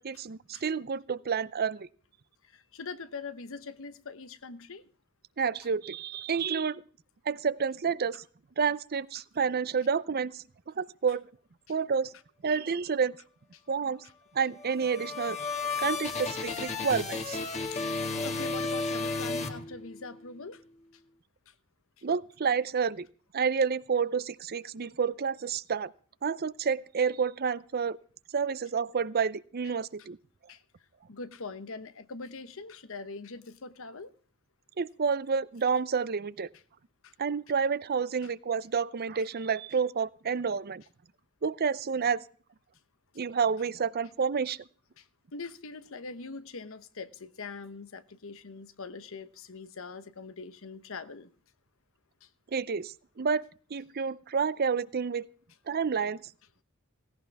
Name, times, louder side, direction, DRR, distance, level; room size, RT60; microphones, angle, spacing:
voice 1, 0.0-1.9 5.4-6.8 7.3-8.2 8.6-11.3 11.7-12.1 12.4-13.2 13.7-14.0 14.3-15.5 15.8-17.4 22.0-23.1 23.3-25.9 26.2-28.0 28.3-30.2 34.8-36.5 37.2-40.8 41.4-42.2 43.2-44.6 52.5-53.4 53.7-55.3 55.7-56.2, right 6 dB, 45° right, 0.6 m, -29 dB
voice 2, 2.4-4.9 17.7-20.6 21.5-21.6 30.5-30.6 31.1-34.1 37.0-37.1 38.2-38.3 45.0-45.1 45.3-51.3 52.2-52.3, left 4 dB, 65° left, 1.0 m, -42 dB
sound 1, 14.6-20.2, left 3 dB, 30° left, 2.0 m, -33 dB
17.5 x 16.5 x 3.5 m
head